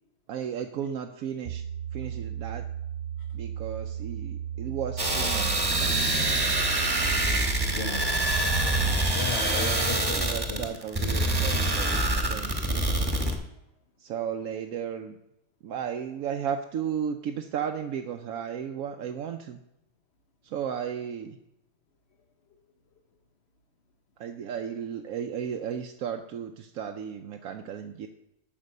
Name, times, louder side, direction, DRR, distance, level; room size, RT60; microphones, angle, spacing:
voice 1, 0.3-1.6 1.9-2.6 3.3-6.3 6.8-7.1 9.2-12.8 14.0-15.1 15.6-19.6 20.4-21.4 24.2-28.1, right 8 dB, 90° right, 4 dB, 1.1 m, -34 dB
sound 1, 1.5-9.1, right 9 dB, 65° right, 1.0 m, -35 dB
sound 2, 5.0-13.4, right 1 dB, 20° right, 1.1 m, -25 dB
voice 2, 7.7-10.2 10.5-10.7, left 6 dB, 55° left, 5 dB, 0.9 m, -36 dB
8.9 x 5.8 x 6.6 m, 0.85 s
omnidirectional pair, 1.4 m